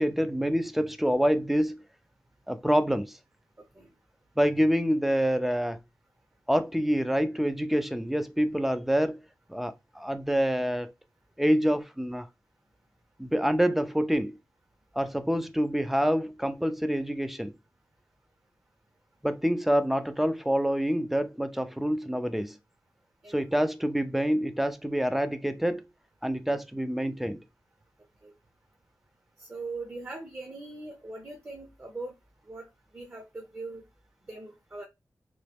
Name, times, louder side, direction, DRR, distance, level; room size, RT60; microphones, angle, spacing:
voice 1, 0.0-1.8 2.5-3.2 4.4-5.8 6.5-9.2 9.5-10.9 11.4-12.3 13.2-14.4 15.0-17.5 19.2-22.6 23.3-25.8 26.2-27.4, equal, 5° right, 0.4 m, -26 dB
voice 2, 29.4-32.1 32.5-32.7 32.9-33.8 34.2-34.8, right 3 dB, 30° right, 0.8 m, -40 dB
3.0 x 2.2 x 3.3 m
wide cardioid pair, 85°, 6 cm